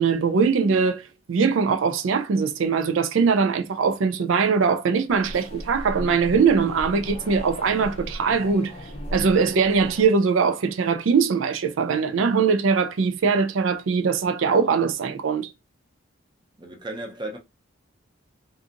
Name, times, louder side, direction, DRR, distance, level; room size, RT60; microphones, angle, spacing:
voice 1, 0.0-8.7 9.1-15.5, right 5 dB, 80° right, 0.4 m, -21 dB
sound 1, 5.1-10.1, equal, 30° left, 0.4 m, -37 dB
voice 2, 16.6-17.4, right 1 dB, 25° right, 0.6 m, -34 dB
2.7 x 2.5 x 2.4 m
head